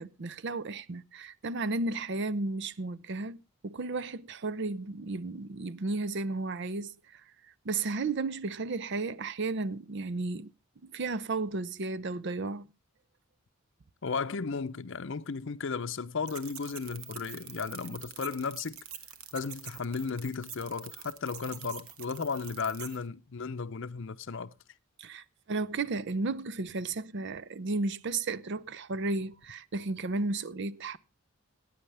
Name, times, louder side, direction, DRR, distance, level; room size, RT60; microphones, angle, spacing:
voice 1, 0.0-7.2 7.6-10.5 10.8-12.7 25.0-31.0, right 3 dB, 55° right, 0.6 m, -33 dB
voice 2, 14.0-18.8 19.3-24.5, left 5 dB, 60° left, 0.6 m, -35 dB
sound 1, 16.3-23.0, right 8 dB, 85° right, 1.3 m, -46 dB
18.0 x 9.5 x 3.3 m
head